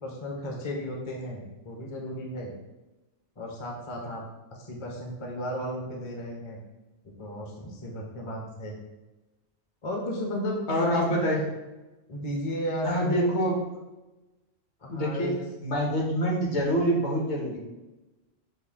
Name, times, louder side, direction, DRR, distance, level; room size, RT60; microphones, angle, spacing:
voice 1, 0.0-2.5 3.4-4.2 4.5-6.6 7.2-8.8 9.8-11.2 12.1-13.2 14.8-15.3, equal, 35° left, 0 dB, 0.5 m, -34 dB
voice 2, 10.7-11.4 12.8-13.6 14.9-15.3 15.6-17.6, equal, 60° left, -2 dB, 1.2 m, -26 dB
6.3 x 2.2 x 3.4 m, 1.1 s
omnidirectional pair, 1.3 m